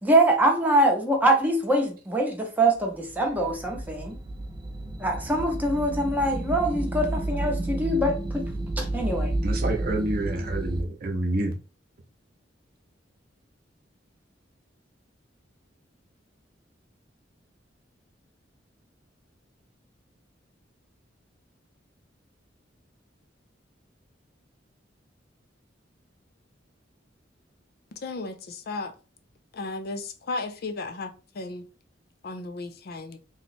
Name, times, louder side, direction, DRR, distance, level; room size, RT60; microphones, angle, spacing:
voice 1, 0.0-4.2 5.0-8.4 8.8-9.3, right 1 dB, 10° right, 0.8 m, -24 dB
sound 1, 3.1-10.8, right 1 dB, 25° right, 0.4 m, -31 dB
voice 2, 9.4-11.5, right 1 dB, 55° right, 0.7 m, -28 dB
voice 3, 28.0-28.9 29.5-31.6 32.2-33.2, left 3 dB, 55° left, 0.5 m, -34 dB
3.0 x 2.1 x 4.2 m
head